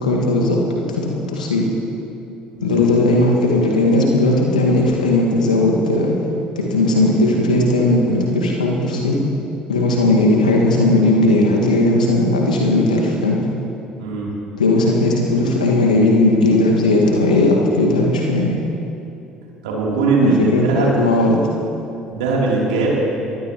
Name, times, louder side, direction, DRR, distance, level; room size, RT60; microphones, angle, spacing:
voice 1, 0.0-1.6 2.6-6.2 6.6-9.2 9.7-13.4 14.6-18.5 20.2-21.5, left 2 dB, 85° left, -2 dB, 2.0 m, -17 dB
voice 2, 14.0-14.3 19.6-20.9 22.1-23.2, right 3 dB, 70° right, -4 dB, 3.5 m, -20 dB
23.0 x 15.5 x 3.1 m, 2.8 s
figure-of-eight pair, 55°, 4 cm